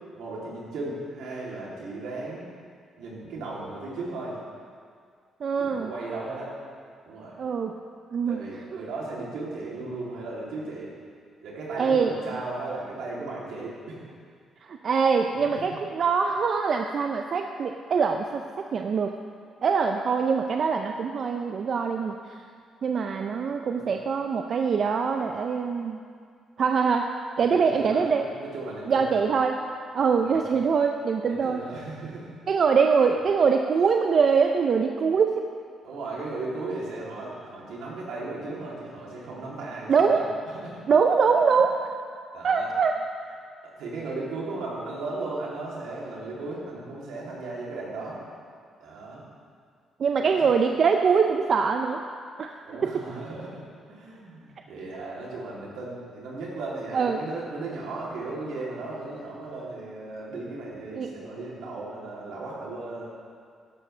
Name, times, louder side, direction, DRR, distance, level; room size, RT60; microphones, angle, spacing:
voice 1, 0.1-2.5 3.0-4.4 5.6-6.5 7.1-7.4 8.3-10.9 11.4-14.1 15.5-15.7 23.7-24.0 27.4-29.2 30.1-30.5 31.3-32.4 35.8-40.2 40.5-40.8 41.5-41.6 42.3-42.7 43.7-48.2 48.8-49.2 50.2-50.5 52.7-63.0, right 2 dB, 85° right, -5 dB, 3.1 m, -36 dB
voice 2, 5.4-5.9 7.4-7.7 8.1-8.4 8.7-8.9 11.8-12.1 14.6-19.1 19.6-22.4 22.8-26.0 26.6-27.1 27.4-28.2 28.9-29.6 29.9-31.6 32.5-35.4 39.9-40.2 40.9-41.8 42.4-43.0 50.0-52.0 52.4-52.5 56.9-57.2 61.0-61.1, right 5 dB, 55° right, 4 dB, 0.6 m, -23 dB
13.0 x 11.5 x 3.3 m, 2.1 s
cardioid pair, 90°, 0 cm